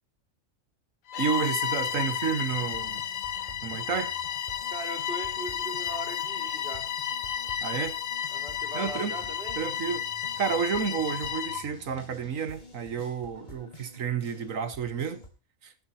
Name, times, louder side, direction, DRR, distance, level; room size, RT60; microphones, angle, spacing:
Bowed string instrument, 1.1-11.7, left 9 dB, 70° left, 1.3 m, -32 dB
voice 1, 1.2-3.0 3.6-4.2 7.6-8.0 8.7-9.1 9.6-10.1 10.4-15.2 15.6-15.7, right 7 dB, 70° right, 1.8 m, -30 dB
sound 1, 1.8-15.3, left 1 dB, 30° left, 3.1 m, -49 dB
voice 2, 4.7-6.9 8.3-9.6, right 2 dB, 45° right, 4.3 m, -40 dB
18.5 x 12.0 x 2.9 m
omnidirectional pair, 1.4 m